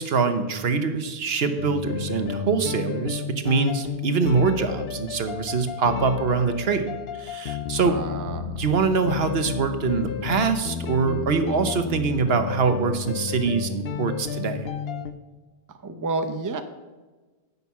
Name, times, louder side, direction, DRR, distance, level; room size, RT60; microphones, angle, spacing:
voice 1, 0.0-6.9 7.2-8.0 8.6-14.7, right 5 dB, 70° right, 9 dB, 1.1 m, -24 dB
sound 1, 1.6-15.1, left 8 dB, 70° left, 0.8 m, -32 dB
voice 2, 7.8-8.5 15.8-16.6, right 3 dB, 20° right, 8 dB, 0.6 m, -30 dB
10.5 x 5.5 x 8.3 m, 1.3 s
omnidirectional pair, 1.1 m